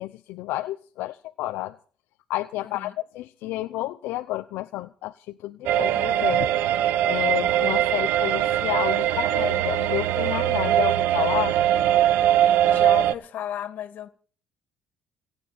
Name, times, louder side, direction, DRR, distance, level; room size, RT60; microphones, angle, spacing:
voice 1, 0.0-1.8 2.3-6.5 7.0-11.6, left 16 dB, 80° left, 0.9 m, -30 dB
voice 2, 2.6-2.9 12.6-14.1, left 10 dB, 55° left, 2.6 m, -34 dB
sound 1, 5.7-13.1, right 11 dB, 75° right, 1.1 m, -21 dB
28.5 x 10.0 x 4.5 m
cardioid pair, 135°, 4 cm